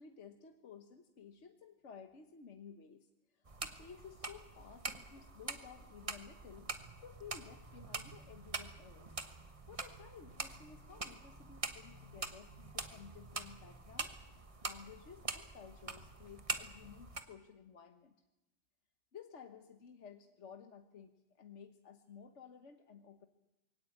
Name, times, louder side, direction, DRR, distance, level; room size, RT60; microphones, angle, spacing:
voice 1, 0.0-6.7 7.0-9.2 9.7-14.1 14.6-18.1 19.1-23.3, left 6 dB, 75° left, 5 dB, 1.5 m, -55 dB
sound 1, 3.5-17.2, right 3 dB, 30° right, 1.3 m, -45 dB
22.5 x 18.0 x 8.6 m, 0.95 s
omnidirectional pair, 1.2 m